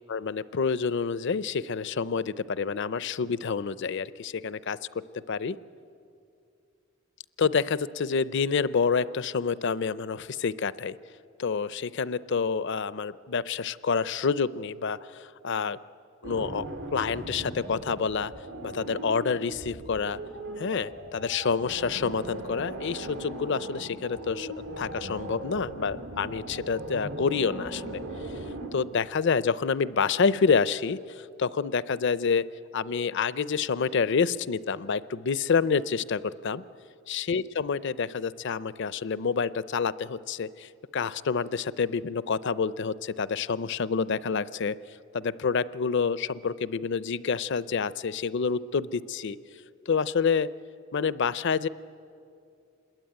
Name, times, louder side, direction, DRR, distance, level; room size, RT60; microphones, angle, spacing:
voice 1, 0.1-4.8 5.3-5.6 7.4-11.0 11.4-15.8 16.2-16.6 16.9-18.3 18.6-20.2 20.6-28.0 28.7-32.4 32.7-36.6 37.1-44.8 45.1-49.4 49.9-50.5 50.9-51.7, left 5 dB, 60° left, 17 dB, 0.6 m, -28 dB
sound 1, 16.2-28.7, right 1 dB, 85° right, 3.2 m, -39 dB
26.5 x 21.5 x 9.3 m, 2.5 s
head